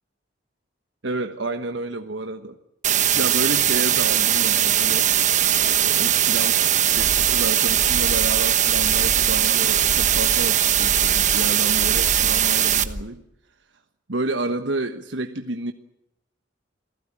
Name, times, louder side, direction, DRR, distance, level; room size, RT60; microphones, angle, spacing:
voice 1, 1.0-2.6 3.1-5.3 5.6-6.6 6.9-13.2 14.1-15.7, right 2 dB, 80° right, 7 dB, 1.4 m, -30 dB
sound 1, 2.8-12.8, right 10 dB, 40° right, 1.2 m, -20 dB
sound 2, 7.0-13.0, left 1 dB, 30° left, 1.7 m, -34 dB
27.5 x 16.5 x 9.0 m, 0.81 s
head